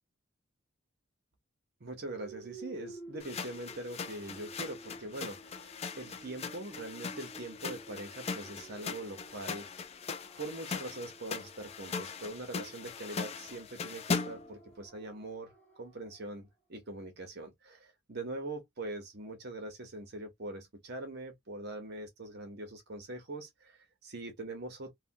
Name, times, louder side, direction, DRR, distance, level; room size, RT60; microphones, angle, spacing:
voice 1, 1.8-9.9 10.4-24.9, right 2 dB, 50° right, 0.9 m, -43 dB
sound 1, 2.1-16.3, right 2 dB, 10° left, 0.9 m, -53 dB
sound 2, 3.2-14.5, left 5 dB, 30° left, 0.4 m, -40 dB
3.3 x 2.2 x 2.6 m
head